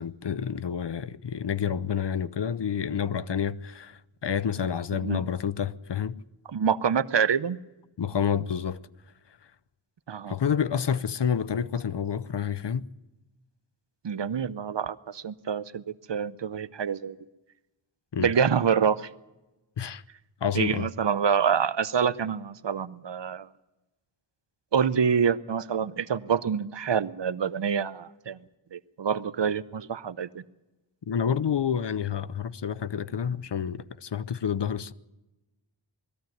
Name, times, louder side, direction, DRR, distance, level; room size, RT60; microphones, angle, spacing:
voice 1, 0.0-6.2 8.0-8.8 10.3-12.9 18.1-18.3 19.8-20.0 20.4-20.9 31.1-34.9, left 7 dB, 60° left, 0.8 m, -29 dB
voice 2, 6.5-7.6 10.1-10.3 14.0-17.2 18.2-19.1 20.5-23.5 24.7-28.4 28.7-30.4, right 7 dB, 60° right, 0.8 m, -26 dB
20.5 x 14.5 x 9.2 m
cardioid pair, 45°, 48 cm